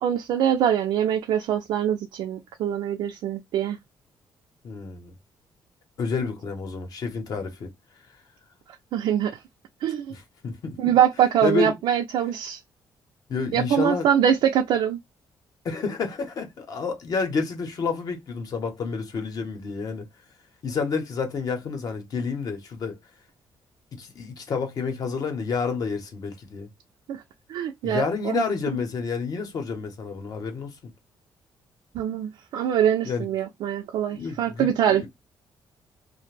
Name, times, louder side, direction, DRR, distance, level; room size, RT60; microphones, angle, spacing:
voice 1, 0.0-3.8 8.9-9.4 9.8-10.1 10.8-12.6 13.5-15.0 27.1-27.2 27.5-28.4 31.9-35.1, right 9 dB, 80° right, 0.4 m, -23 dB
voice 2, 4.6-5.1 6.0-7.7 10.1-11.0 11.4-11.8 13.3-14.1 15.6-20.1 20.6-23.0 23.9-26.7 27.8-30.8 33.0-33.3 34.1-35.1, left 5 dB, 50° left, 0.8 m, -29 dB
2.5 x 2.1 x 3.1 m
cardioid pair, 165°, 8 cm